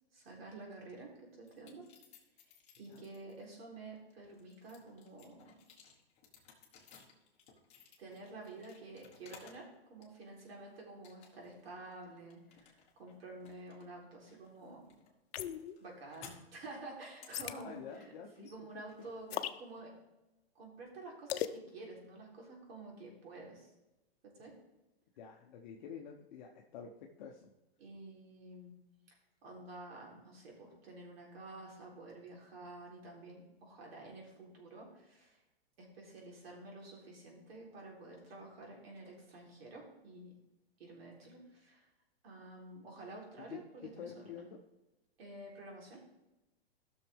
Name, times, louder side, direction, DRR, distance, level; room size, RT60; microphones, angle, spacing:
voice 1, 0.1-1.8 2.8-5.6 8.0-14.9 15.8-19.9 20.6-23.7 24.2-24.5 27.8-28.8 29.1-35.4 35.8-40.3 40.8-41.9 42.2-44.3 45.2-46.0, right 2 dB, 65° right, -2 dB, 3.7 m, -50 dB
sound 1, 1.4-3.4 4.0-9.7 10.0-10.6 11.0-11.6 11.9-19.8, left 6 dB, 20° left, 1.5 m, -60 dB
sound 2, 15.3-15.7 17.3-17.6 19.3-19.6 21.3-21.6, left 11 dB, 70° left, 0.7 m, -37 dB
voice 2, 17.5-19.1 25.2-26.9 27.2-27.5 43.5-43.6 44.0-44.6, left 7 dB, 45° left, 0 dB, 0.9 m, -48 dB
14.5 x 6.4 x 3.5 m, 0.97 s
hypercardioid pair, 155°, 32 cm